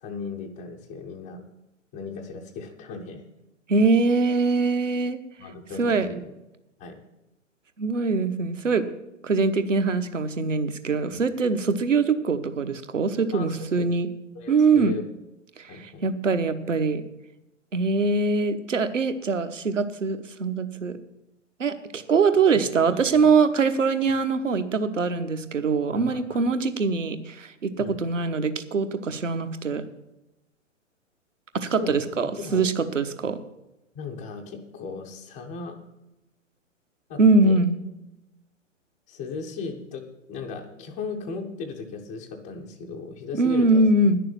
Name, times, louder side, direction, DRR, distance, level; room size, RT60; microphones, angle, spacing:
voice 1, 0.0-1.4 1.9-3.3 5.4-6.3 6.8-7.0 11.1-11.2 13.3-13.9 14.3-15.1 15.7-16.1 22.5-23.3 25.9-26.5 27.8-28.0 31.7-32.7 33.9-35.8 37.1-37.6 39.1-43.8, left 4 dB, 5° left, -3 dB, 0.3 m, -37 dB
voice 2, 3.7-5.2 5.8-6.1 7.8-8.8 9.2-14.1 14.5-15.0 15.6-15.7 16.0-17.0 17.7-21.0 21.6-29.8 31.5-33.4 37.2-37.8 43.3-44.2, right 4 dB, 75° right, 9 dB, 1.2 m, -23 dB
10.0 x 6.7 x 9.0 m, 0.94 s
figure-of-eight pair, 115°, 38 cm